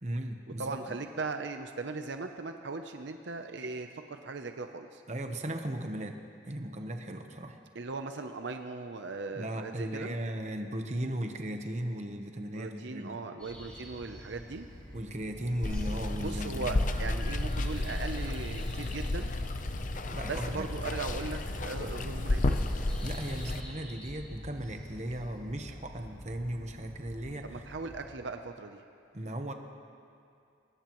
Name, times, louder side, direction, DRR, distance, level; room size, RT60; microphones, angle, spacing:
voice 1, 0.0-1.0 5.1-7.6 9.3-13.2 14.9-16.9 20.1-20.7 23.0-27.6 29.1-29.5, right 1 dB, 35° right, 5 dB, 1.0 m, -37 dB
voice 2, 0.6-5.0 7.7-10.2 12.5-14.7 16.2-19.4 20.3-22.4 27.4-28.8, right 3 dB, 70° right, 6 dB, 0.7 m, -38 dB
sound 1, 13.4-28.1, equal, 5° left, 3.6 m, -47 dB
Water, 15.6-23.6, left 2 dB, 40° left, 0.6 m, -32 dB
23.5 x 19.5 x 3.1 m, 2.5 s
head